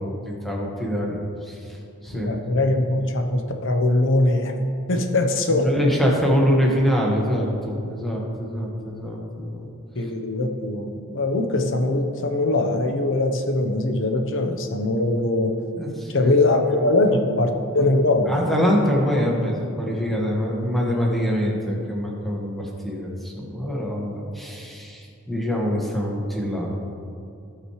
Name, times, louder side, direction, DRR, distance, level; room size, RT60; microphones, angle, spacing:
voice 1, 0.0-1.6 2.0-2.7 5.5-9.7 15.8-16.3 16.7-16.9 18.3-26.7, equal, ahead, -3 dB, 1.7 m, -24 dB
voice 2, 2.1-4.5 4.9-5.7 10.0-15.5 16.1-18.4, left 2 dB, 60° left, 5 dB, 1.0 m, -21 dB
18.5 x 6.3 x 3.3 m, 2.5 s
head